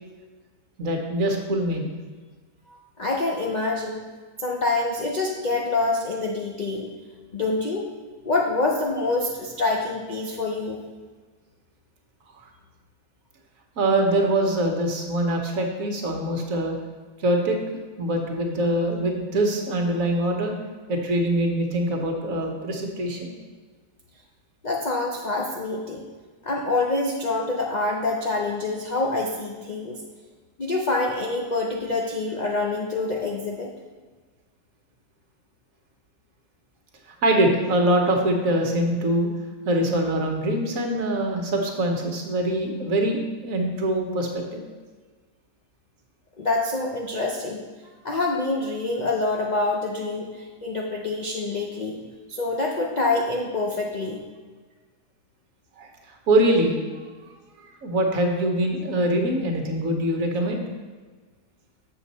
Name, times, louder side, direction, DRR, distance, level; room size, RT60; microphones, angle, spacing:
voice 1, 0.8-1.9 12.4-12.5 13.8-16.7 17.2-17.6 18.0-20.5 20.9-23.4 37.1-39.3 39.6-44.6 55.8-56.7 57.8-60.6, right 1 dB, 60° right, 3 dB, 1.3 m, -23 dB
voice 2, 2.7-4.0 4.4-6.9 7.3-7.9 8.2-10.9 24.6-26.1 26.4-30.0 30.6-33.7 46.4-47.6 48.0-52.0 52.3-54.2, left 3 dB, 55° left, -1 dB, 0.5 m, -26 dB
6.8 x 6.8 x 4.1 m, 1.4 s
omnidirectional pair, 1.7 m